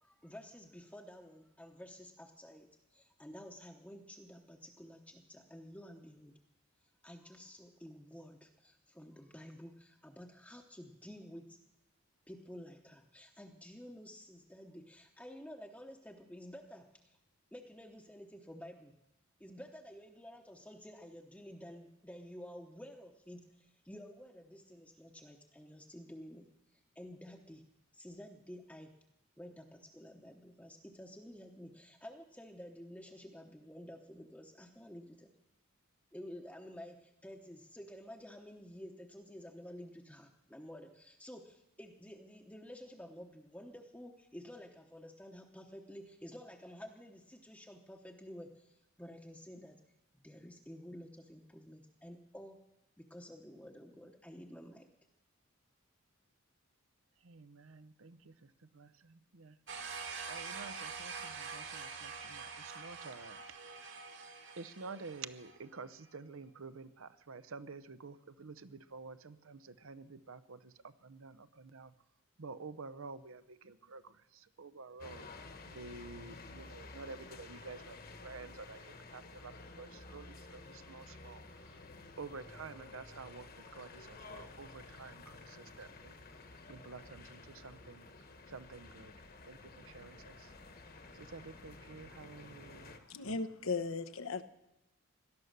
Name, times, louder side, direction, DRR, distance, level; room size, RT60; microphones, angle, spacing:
voice 1, 0.0-6.3 6.8-11.6 12.3-17.2 17.5-18.9 19.4-27.6 27.9-28.9 29.4-35.3 36.1-49.8 50.2-52.6 53.0-54.9, equal, 5° left, 1 dB, 0.9 m, -51 dB
voice 2, 57.2-59.6 60.2-64.0 64.6-71.9 72.4-81.9 82.2-88.1 88.5-90.5 91.1-93.0, right 4 dB, 75° right, 14 dB, 0.7 m, -50 dB
sound 1, 59.7-65.6, right 5 dB, 55° right, 2.1 m, -45 dB
sound 2, 75.0-93.0, left 3 dB, 45° left, 1.4 m, -52 dB
voice 3, 93.1-94.4, left 4 dB, 75° left, 12 dB, 1.0 m, -37 dB
17.5 x 12.5 x 6.6 m, 0.90 s
head